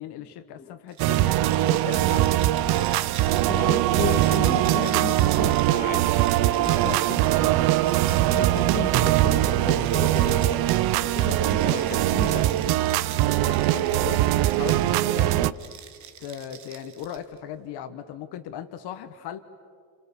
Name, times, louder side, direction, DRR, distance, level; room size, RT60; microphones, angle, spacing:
voice 1, 0.0-2.7 3.5-3.8 4.1-4.2 6.6-7.0 11.0-11.4 13.2-14.3 14.5-15.6 16.2-19.4, left 9 dB, 55° left, 9 dB, 1.4 m, -38 dB
sound 1, 0.9-10.6 11.2-15.1 15.5-17.4, right 8 dB, 35° right, 1.4 m, -43 dB
sound 2, 1.0-15.5, right 14 dB, 55° right, 0.7 m, -22 dB
voice 2, 3.5-6.1 6.5-12.8, left 5 dB, 20° left, 5 dB, 1.6 m, -35 dB
29.0 x 28.5 x 7.1 m, 2.2 s
cardioid pair, 170°, 47 cm